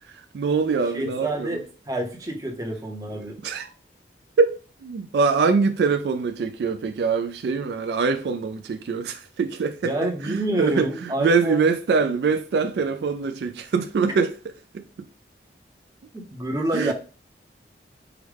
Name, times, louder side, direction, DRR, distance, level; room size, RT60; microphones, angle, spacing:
voice 1, 0.3-1.6 3.4-3.7 4.4-4.6 4.8-9.9 10.3-14.3 14.7-14.8 16.7-16.9, right 5 dB, 70° right, 0.3 m, -23 dB
voice 2, 0.9-3.4 9.8-11.7 16.1-16.9, right 1 dB, 20° right, 0.6 m, -28 dB
4.8 x 2.1 x 3.2 m
head